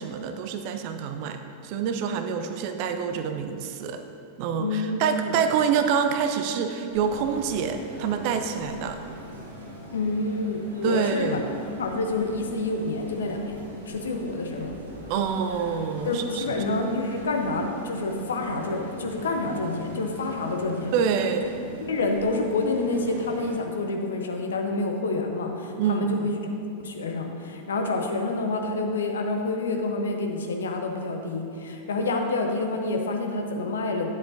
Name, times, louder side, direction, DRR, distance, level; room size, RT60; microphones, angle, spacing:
voice 1, 0.0-4.0 4.4-9.0 10.8-11.4 15.1-16.6 20.9-21.5 25.8-26.4, right 6 dB, 45° right, 7 dB, 0.5 m, -26 dB
voice 2, 4.6-5.4 9.9-11.4 11.8-13.6 13.9-14.7 16.0-20.9 21.8-26.4 26.8-34.1, left 2 dB, 65° left, 3 dB, 0.8 m, -28 dB
sound 1, 6.9-23.5, equal, 70° right, 1.7 m, -41 dB
10.5 x 7.1 x 2.6 m, 2.6 s
figure-of-eight pair, 90°, 0 cm